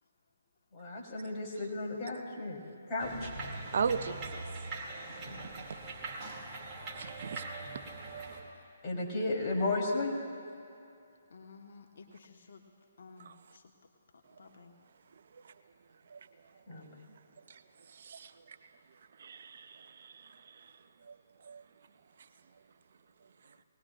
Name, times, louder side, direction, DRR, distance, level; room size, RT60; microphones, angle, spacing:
voice 1, 0.7-2.6 2.9-3.3 8.8-10.2 16.7-17.0, left 2 dB, 25° left, -5 dB, 3.6 m, -34 dB
sound 1, 3.0-8.4, right 2 dB, 25° right, 2.6 m, -42 dB
voice 2, 3.7-4.4 6.9-7.4 8.0-8.1 13.2-13.3 16.1-16.2 17.5-17.6 18.0-18.3 19.2-20.6 21.1-21.2 21.5-21.6, right 6 dB, 60° right, 11 dB, 0.6 m, -37 dB
voice 3, 11.3-12.7 13.0-13.7 14.4-14.7, left 4 dB, 65° left, 2 dB, 1.3 m, -54 dB
21.0 x 19.0 x 2.5 m, 2.7 s
figure-of-eight pair, 140°, 0 cm